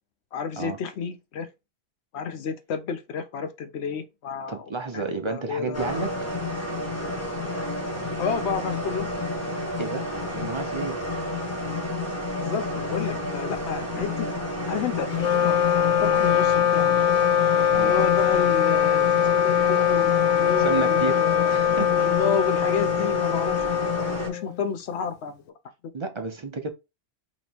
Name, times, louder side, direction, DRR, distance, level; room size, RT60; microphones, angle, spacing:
voice 1, 0.3-1.5 2.1-4.7 4.9-6.1 8.2-9.1 12.4-14.3 14.7-15.1 15.4-15.6 16.0-17.0 17.8-21.5 21.9-25.4 25.8-25.9, left 6 dB, 80° left, 1.0 m, -31 dB
voice 2, 4.5-6.1 9.8-10.1 10.3-11.0 17.7-18.0 20.6-22.2 25.9-26.7, right 4 dB, 35° right, 0.5 m, -31 dB
sound 1, 5.7-24.3, left 2 dB, 15° left, 1.1 m, -30 dB
Wind instrument woodwind instrument, 15.1-24.7, left 10 dB, 55° left, 0.5 m, -22 dB
3.1 x 3.0 x 4.1 m
omnidirectional pair, 1.1 m